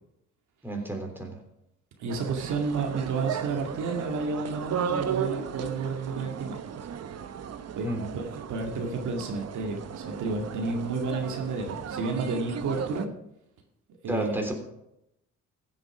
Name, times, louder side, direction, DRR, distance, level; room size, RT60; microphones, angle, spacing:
voice 1, 0.6-1.4 7.8-8.1 14.1-14.5, right 1 dB, 5° right, 2 dB, 3.5 m, -31 dB
voice 2, 2.0-6.6 7.8-7.9 8.1-13.1 14.0-14.4, right 4 dB, 75° right, 2 dB, 2.2 m, -31 dB
sound 1, 2.1-13.1, right 8 dB, 55° right, 1.0 m, -36 dB
15.5 x 8.0 x 5.0 m, 0.82 s
cardioid pair, 90°, 30 cm